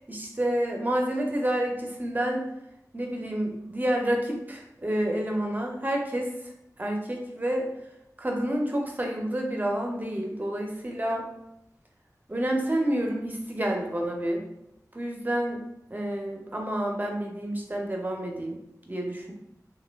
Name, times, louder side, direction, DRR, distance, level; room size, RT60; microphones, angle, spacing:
voice 1, 0.1-2.4 2.9-6.3 6.8-7.7 8.2-11.3 12.3-14.4 14.9-15.6 15.9-18.6 18.9-19.3, right 1 dB, 25° right, 1 dB, 0.6 m, -29 dB
2.9 x 2.2 x 3.3 m, 0.83 s
wide cardioid pair, 60°, 7 cm